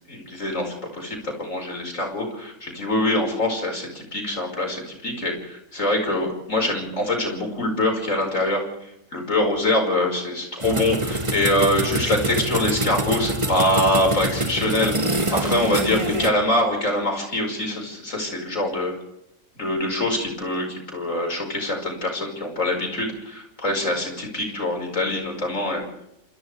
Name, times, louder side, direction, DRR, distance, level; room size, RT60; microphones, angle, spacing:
voice 1, 0.1-8.6 9.1-19.0 19.6-25.8, left 1 dB, 65° left, 2 dB, 5.8 m, -24 dB
sound 1, 10.6-16.3, right 1 dB, 20° right, 1.5 m, -25 dB
28.0 x 27.0 x 3.5 m, 0.81 s
omnidirectional pair, 1.5 m